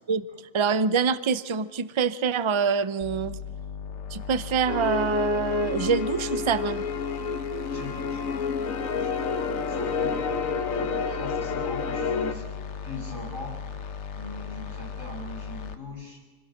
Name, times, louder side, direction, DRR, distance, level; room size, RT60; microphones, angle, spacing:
voice 1, 0.5-3.4 4.1-6.8, right 6 dB, 45° right, 14 dB, 0.3 m, -25 dB
sound 1, 3.0-15.8, left 6 dB, 60° left, 1.3 m, -38 dB
sound 2, 4.7-12.3, left 5 dB, 75° left, 1.5 m, -29 dB
voice 2, 7.7-8.3 8.6-9.1 9.7-10.2 10.7-12.5 12.8-13.6 14.1-16.2, left 2 dB, 65° right, -3 dB, 5.8 m, -40 dB
25.0 x 16.5 x 6.5 m, 1.4 s
omnidirectional pair, 1.4 m